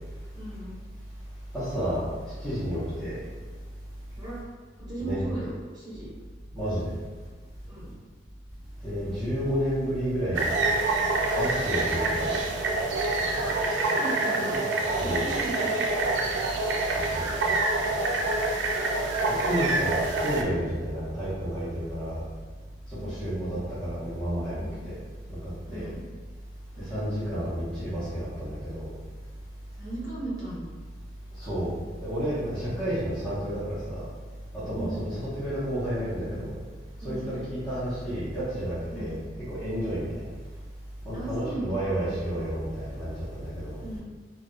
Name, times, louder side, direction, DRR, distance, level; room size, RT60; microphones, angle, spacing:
voice 1, 0.3-0.7 4.2-4.4 4.8-6.1 7.7-7.9 13.4-15.9 23.0-23.3 24.5-24.8 25.7-26.0 26.7-27.0 29.8-30.6 32.5-32.7 34.7-35.1 37.0-37.3 38.9-39.2 41.1-42.2 43.8-44.0, right 1 dB, 20° right, -8 dB, 1.0 m, -37 dB
voice 2, 1.5-2.0 2.4-3.2 5.0-5.2 6.5-6.9 8.8-10.6 11.4-12.4 15.0-15.2 16.9-17.4 19.3-22.2 22.9-25.0 25.3-25.9 26.9-28.9 31.4-31.7 32.0-34.1 34.5-36.6 37.0-39.2 39.5-40.3 41.0-43.8, equal, 5° left, -16 dB, 0.9 m, -31 dB
sound 1, 10.3-20.4, right 2 dB, 90° right, 0.4 m, -26 dB
2.3 x 2.2 x 3.7 m, 1.4 s
head